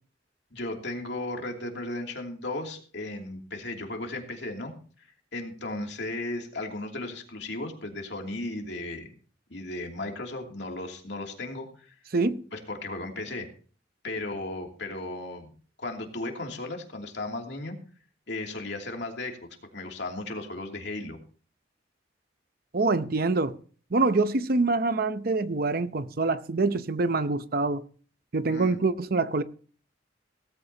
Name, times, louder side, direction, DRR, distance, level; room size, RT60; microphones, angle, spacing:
voice 1, 0.5-4.7 5.0-9.1 9.5-11.9 12.5-13.5 14.0-15.5 15.8-17.8 18.3-19.4 19.7-21.2 28.5-28.8, left 2 dB, 65° left, 2.8 m, -35 dB
voice 2, 22.7-23.6 23.9-27.8 28.3-29.4, right 3 dB, 55° right, 0.7 m, -25 dB
17.5 x 15.0 x 2.9 m
head